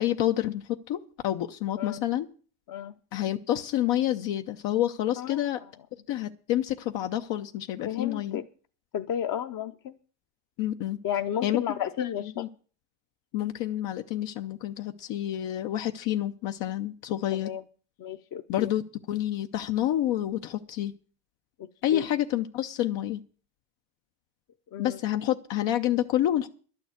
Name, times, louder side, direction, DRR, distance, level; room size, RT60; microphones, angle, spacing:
voice 1, 0.0-2.3 3.1-5.6 6.1-8.4 10.6-11.0 11.4-12.5 13.3-17.5 18.5-18.8 19.1-20.9 21.8-23.2 24.8-26.5, left 12 dB, 75° left, 6 dB, 0.9 m, -28 dB
voice 2, 7.9-8.4 8.9-9.9 11.0-12.4 17.3-17.6 18.0-18.7 21.9-22.0 24.7-25.0, left 9 dB, 45° left, 6 dB, 0.7 m, -32 dB
11.5 x 7.0 x 9.2 m, 0.41 s
cardioid pair, 125°, 45 cm